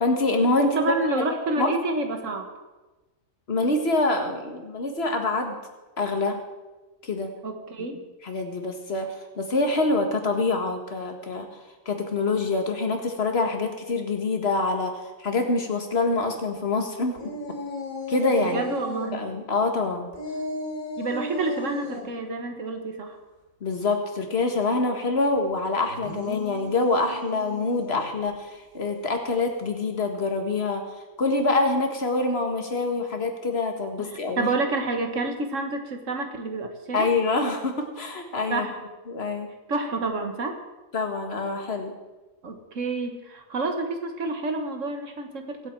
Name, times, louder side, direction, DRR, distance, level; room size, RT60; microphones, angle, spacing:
voice 1, 0.0-1.3 1.6-1.7 3.5-5.6 6.0-6.4 7.0-7.3 8.2-11.5 11.9-17.2 18.1-18.6 19.0-20.1 23.6-30.8 31.2-34.5 36.9-38.7 39.1-39.5 40.9-41.9, left 3 dB, 50° left, 4 dB, 1.9 m, -25 dB
voice 2, 0.6-2.5 7.4-8.0 18.4-19.3 21.0-23.2 34.0-34.1 34.4-37.1 38.5-38.8 39.7-40.6 42.4-45.7, right 2 dB, 65° right, 5 dB, 1.7 m, -29 dB
sound 1, 17.2-19.1 20.1-22.1 25.9-28.1, left 2 dB, 85° left, 3.4 m, -35 dB
23.5 x 8.0 x 4.5 m, 1.2 s
omnidirectional pair, 1.4 m